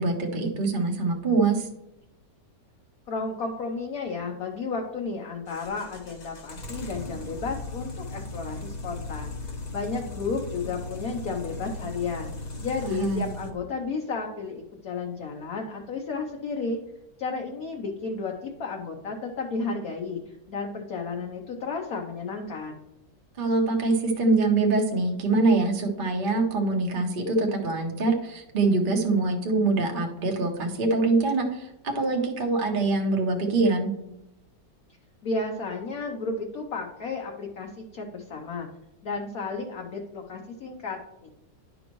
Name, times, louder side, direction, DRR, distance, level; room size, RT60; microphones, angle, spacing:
voice 1, 0.0-1.7 12.8-13.3 23.4-33.9, right 3 dB, 35° right, 1 dB, 0.9 m, -24 dB
voice 2, 3.1-12.3 12.6-16.8 17.2-22.8 35.2-38.7 39.0-41.3, left 4 dB, 60° left, 1 dB, 1.1 m, -33 dB
sound 1, 5.5-13.5, left 2 dB, 40° left, 0.6 m, -37 dB
11.0 x 5.2 x 3.0 m, 0.88 s
omnidirectional pair, 1.9 m